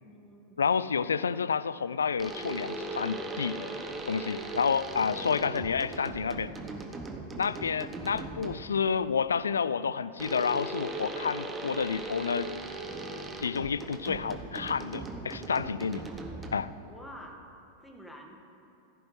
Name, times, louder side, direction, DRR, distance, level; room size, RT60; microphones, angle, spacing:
voice 1, 0.0-0.6 5.4-5.8 16.9-17.4 17.8-18.4, equal, 5° left, 0 dB, 1.6 m, -48 dB
voice 2, 0.6-3.7 4.1-6.5 7.4-12.5 13.4-16.1 16.5-16.7, left 6 dB, 70° left, 16 dB, 0.3 m, -29 dB
sound 1, 2.2-8.8 10.2-16.8, right 2 dB, 15° right, 1.0 m, -39 dB
15.5 x 13.5 x 3.2 m, 2.7 s
figure-of-eight pair, 90°, 0 cm